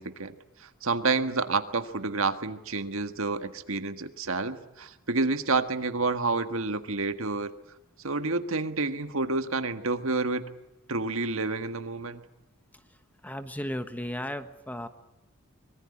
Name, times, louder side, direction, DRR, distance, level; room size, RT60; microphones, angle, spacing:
voice 1, 0.0-7.5 8.0-10.4 10.9-12.2, right 3 dB, 75° right, 9 dB, 1.7 m, -29 dB
voice 2, 12.7-14.9, equal, 5° left, 9 dB, 1.2 m, -36 dB
25.0 x 22.5 x 10.0 m, 0.90 s
head